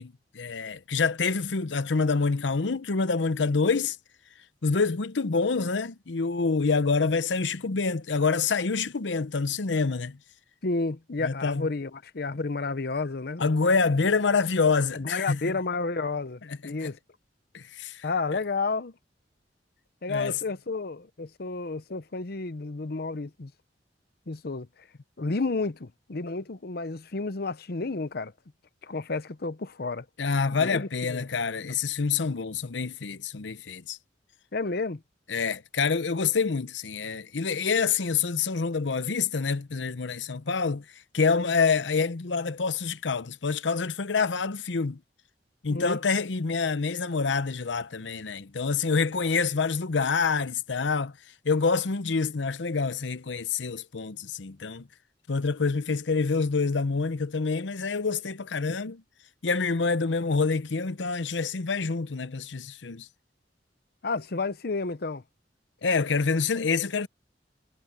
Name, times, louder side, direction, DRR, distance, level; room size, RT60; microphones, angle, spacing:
voice 1, 0.0-4.0 4.6-10.2 11.2-11.7 13.4-15.4 16.6-16.9 17.5-18.0 18.3-18.4 20.1-20.4 30.2-34.0 35.3-40.8 41.1-45.0 45.6-51.1 51.4-54.9 55.3-59.0 59.4-63.1 65.8-67.1, left 4 dB, 85° left, 0.8 m, -27 dB
voice 2, 10.6-13.5 14.9-17.0 18.0-18.9 20.0-23.5 24.3-24.7 25.2-28.3 28.8-30.0 30.5-31.3 34.5-35.0 45.7-46.0 64.0-65.2, left 3 dB, 60° left, 0.8 m, -31 dB
head